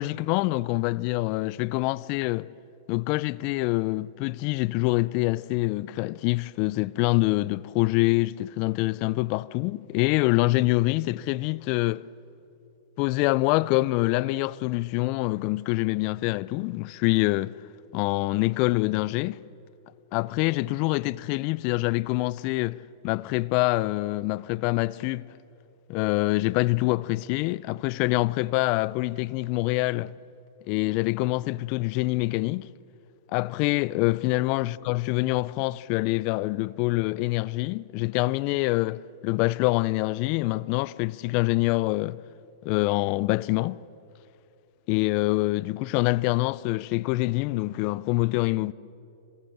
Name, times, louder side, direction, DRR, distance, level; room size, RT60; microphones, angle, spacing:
voice 1, 0.0-2.5 2.9-12.0 13.0-17.5 17.9-19.4 20.1-25.3 25.9-30.1 30.7-32.7 33.3-42.2 42.6-43.8 44.9-48.7, left 21 dB, 45° left, 0.5 m, -25 dB
27.0 x 23.0 x 7.6 m
hypercardioid pair, 115°, 2 cm